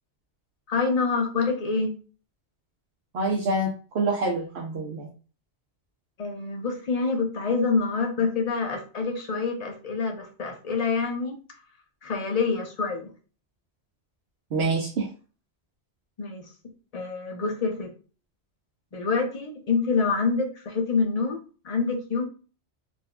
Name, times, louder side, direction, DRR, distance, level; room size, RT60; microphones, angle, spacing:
voice 1, 0.7-1.9 6.2-11.4 12.0-13.1 16.2-16.4 16.9-17.9 18.9-21.4 21.6-22.3, left 4 dB, 40° left, 4 dB, 0.6 m, -26 dB
voice 2, 3.1-5.1 14.5-15.1, right 2 dB, 70° right, -3 dB, 0.9 m, -26 dB
3.8 x 2.5 x 2.2 m, 0.36 s
omnidirectional pair, 1.2 m